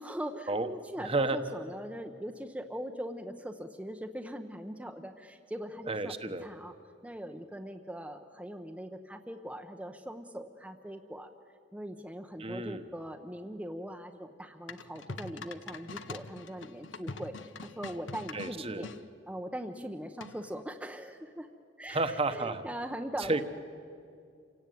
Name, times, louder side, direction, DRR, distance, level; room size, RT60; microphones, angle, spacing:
voice 1, 0.0-6.7 7.0-11.3 11.7-17.3 17.6-18.9 19.3-21.5 21.8-23.4, equal, 5° right, 4 dB, 0.8 m, -41 dB
voice 2, 1.0-1.4 5.9-6.5 12.4-12.9 18.3-18.9 21.9-22.6 23.3-23.4, right 2 dB, 30° right, 9 dB, 1.2 m, -31 dB
sound 1, 14.7-19.0 20.2-20.6, left 3 dB, 85° left, 0.9 m, -44 dB
27.5 x 17.5 x 9.3 m, 2.4 s
head